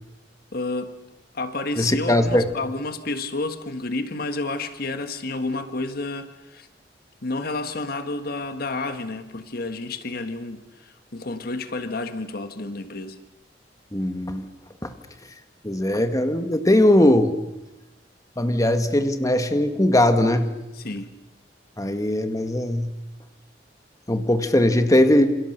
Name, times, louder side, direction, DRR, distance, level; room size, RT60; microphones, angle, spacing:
voice 1, 0.5-0.9 1.3-6.7 7.2-13.2 20.7-21.1, left 2 dB, 60° left, 9 dB, 1.5 m, -30 dB
voice 2, 1.8-2.5 13.9-14.4 14.8-14.9 15.6-17.3 18.4-20.5 21.8-22.9 24.1-25.4, left 1 dB, 20° left, 8 dB, 1.8 m, -20 dB
28.0 x 28.0 x 6.7 m, 0.99 s
head